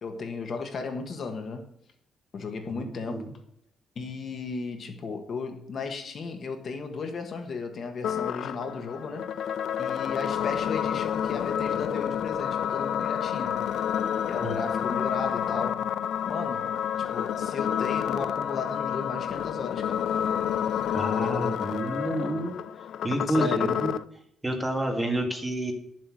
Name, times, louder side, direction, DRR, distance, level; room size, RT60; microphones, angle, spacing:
voice 1, 0.0-1.6 2.3-3.3 3.9-9.3 9.8-13.6 14.3-15.8 16.2-20.0 21.1-21.6 23.3-23.8, left 4 dB, 45° left, 5 dB, 1.5 m, -35 dB
voice 2, 2.7-3.3 14.4-15.0 20.9-22.5 23.0-23.9 24.4-25.7, right 1 dB, 10° right, 3 dB, 1.8 m, -29 dB
sound 1, 8.0-24.0, left 9 dB, 80° left, 0.5 m, -29 dB
11.5 x 7.5 x 6.2 m, 0.74 s
wide cardioid pair, 165°, 0 cm